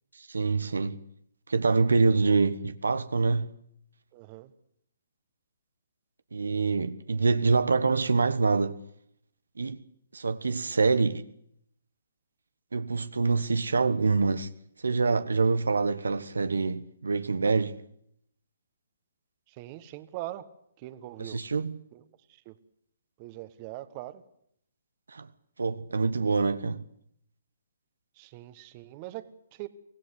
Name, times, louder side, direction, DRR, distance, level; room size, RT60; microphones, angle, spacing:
voice 1, 0.2-1.0 1.5-3.5 6.3-8.8 9.6-9.8 10.1-11.2 12.7-14.5 14.8-17.8 21.2-21.8 25.1-25.3 25.6-26.8, right 4 dB, 85° right, 1.2 m, -25 dB
voice 2, 4.1-4.5 19.6-20.5 20.8-21.4 21.9-22.0 22.4-22.5 23.2-24.2 28.2-29.7, right 16 dB, 35° right, 1.4 m, -41 dB
24.5 x 16.5 x 8.2 m
hypercardioid pair, 145°, 0 cm